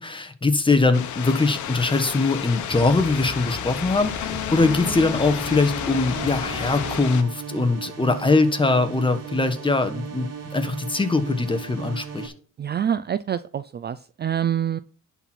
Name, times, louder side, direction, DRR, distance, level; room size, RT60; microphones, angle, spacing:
voice 1, 0.0-12.3, left 3 dB, 15° left, 1.3 m, -22 dB
sound 1, 0.9-7.2, left 10 dB, 75° left, 1.0 m, -31 dB
sound 2, 2.7-7.1, equal, 5° right, 1.4 m, -37 dB
sound 3, 4.6-12.3, right 7 dB, 55° right, 2.4 m, -36 dB
voice 2, 12.6-14.8, right 9 dB, 35° right, 0.4 m, -26 dB
10.5 x 4.5 x 5.9 m
cardioid pair, 90°, 30 cm